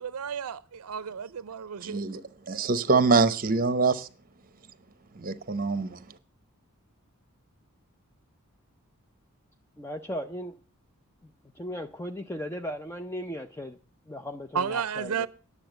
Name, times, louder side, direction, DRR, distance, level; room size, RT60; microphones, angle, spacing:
voice 1, 0.0-2.0 14.5-15.3, right 7 dB, 80° right, 0.5 m, -32 dB
voice 2, 1.8-2.2 2.5-4.1 5.2-6.0, right 4 dB, 40° right, 0.8 m, -24 dB
voice 3, 9.8-10.6 11.5-13.8 14.1-15.3, equal, 10° left, 0.4 m, -36 dB
10.0 x 7.2 x 7.7 m
head